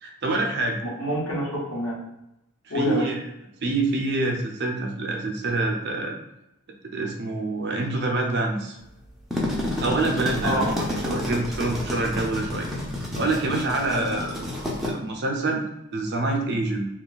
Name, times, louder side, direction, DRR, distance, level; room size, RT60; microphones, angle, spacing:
voice 1, 0.0-0.8 2.7-3.1 3.6-6.1 6.9-8.8 9.8-12.7 13.2-14.3 14.8-15.6 15.9-16.9, right 2 dB, 50° right, 1 dB, 0.6 m, -26 dB
voice 2, 0.8-2.0 2.7-3.1 10.4-10.7 13.9-14.2, equal, 65° left, -4 dB, 1.1 m, -27 dB
sound 1, 9.1-14.9, left 1 dB, ahead, 0.5 m, -29 dB
2.7 x 2.3 x 3.8 m, 0.87 s
head